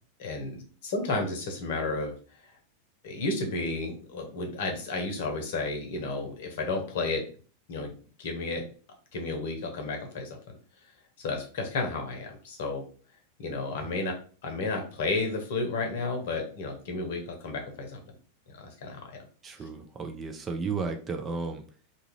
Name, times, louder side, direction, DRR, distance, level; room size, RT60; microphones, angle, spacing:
voice 1, 0.2-0.6 0.8-2.1 2.4-2.6 3.0-7.2 7.7-7.9 8.2-8.7 9.1-10.4 11.2-12.9 13.4-14.1 14.4-18.0 18.5-19.2, left 3 dB, 55° left, 4 dB, 0.8 m, -32 dB
voice 2, 19.4-21.6, right 4 dB, 20° right, 5 dB, 0.4 m, -33 dB
2.8 x 2.4 x 3.0 m, 0.40 s
figure-of-eight pair, 90°, 0 cm